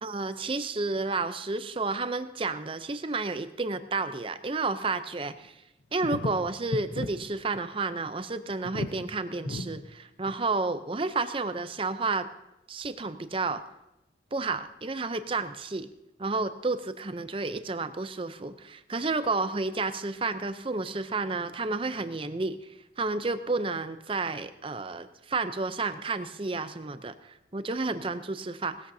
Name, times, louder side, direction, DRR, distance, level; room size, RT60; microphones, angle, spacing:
voice 1, 0.0-5.6 5.9-12.3 12.7-13.6 14.3-15.9 16.2-22.7 23.0-28.9, right 3 dB, 30° right, 11 dB, 0.5 m, -31 dB
sound 1, 5.4-5.5 6.0-7.1 7.4-7.6 7.9-8.0 8.5-9.0 9.4-9.7 10.3-10.4, left 2 dB, 70° left, 0.9 m, -34 dB
19.0 x 13.5 x 2.7 m, 0.91 s
head